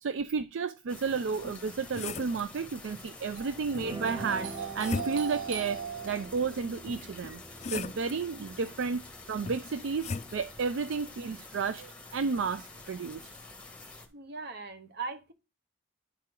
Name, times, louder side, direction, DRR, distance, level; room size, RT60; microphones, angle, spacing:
voice 1, 0.0-7.4 7.7-13.2, right 5 dB, 70° right, 0.4 m, -32 dB
sound 1, 0.9-14.1, left 3 dB, 5° left, 1.4 m, -48 dB
sound 2, 1.4-2.5 4.2-5.4 6.9-8.2 9.5-10.4, left 4 dB, 35° left, 0.3 m, -38 dB
sound 3, 3.6-11.4, right 2 dB, 20° right, 0.6 m, -47 dB
voice 2, 14.1-15.3, right 4 dB, 55° right, 1.0 m, -39 dB
10.5 x 4.4 x 3.7 m
head